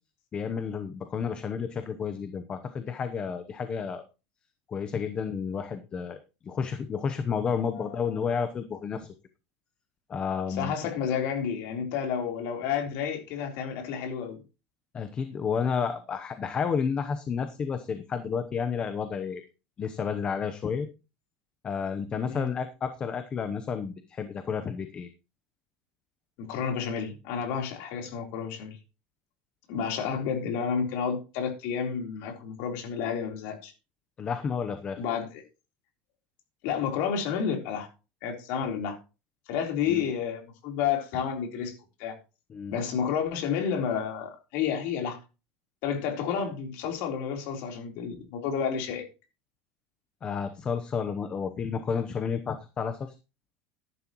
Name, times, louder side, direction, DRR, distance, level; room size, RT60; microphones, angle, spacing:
voice 1, 0.3-4.0 4.7-6.2 6.5-9.1 10.1-10.8 14.9-19.4 19.8-20.9 21.6-25.1 34.2-35.0 39.9-40.0 42.5-42.8 50.2-53.1, left 6 dB, 20° left, 0.8 m, -31 dB
voice 2, 10.6-14.4 22.3-22.5 26.4-28.8 29.7-33.7 35.0-35.4 36.6-37.9 38.2-39.0 39.5-41.7 42.0-42.2 42.7-45.2 45.8-49.0, left 7 dB, 55° left, 3.7 m, -30 dB
13.5 x 11.0 x 3.0 m
cardioid pair, 170°, 5 cm